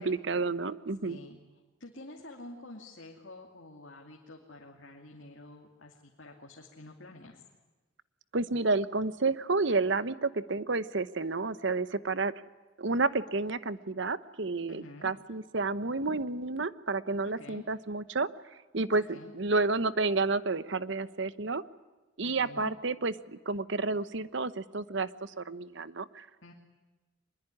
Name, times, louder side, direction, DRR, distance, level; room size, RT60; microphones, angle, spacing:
voice 1, 0.0-1.2 8.3-12.3 12.8-18.3 18.7-21.6 22.2-23.1 23.5-26.3, right 3 dB, 60° right, 15 dB, 0.9 m, -30 dB
voice 2, 1.0-1.4 1.8-7.4 14.7-15.1 17.2-17.6 19.0-19.3 22.2-22.7 26.4-26.5, left 2 dB, 65° left, 0 dB, 2.7 m, -49 dB
25.0 x 21.5 x 10.0 m, 1.2 s
head